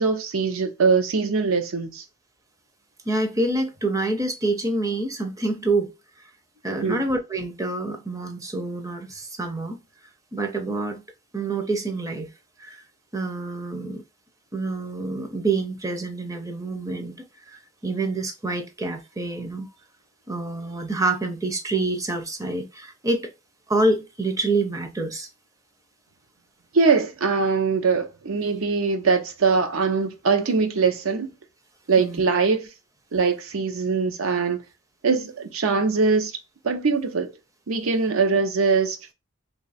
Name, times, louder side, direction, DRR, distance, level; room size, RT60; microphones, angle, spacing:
voice 1, 0.0-2.0 6.8-7.0 26.7-31.3 31.9-32.7 33.1-34.6 35.0-36.3 36.6-37.3 37.7-39.1, right 4 dB, 85° right, 0.6 m, -22 dB
voice 2, 3.1-5.9 6.6-9.8 10.3-11.0 11.3-12.3 12.6-12.8 13.1-14.0 14.5-19.7 20.3-23.3 23.7-25.3 32.0-32.2, right 2 dB, 15° right, 0.5 m, -27 dB
3.1 x 2.3 x 4.0 m
head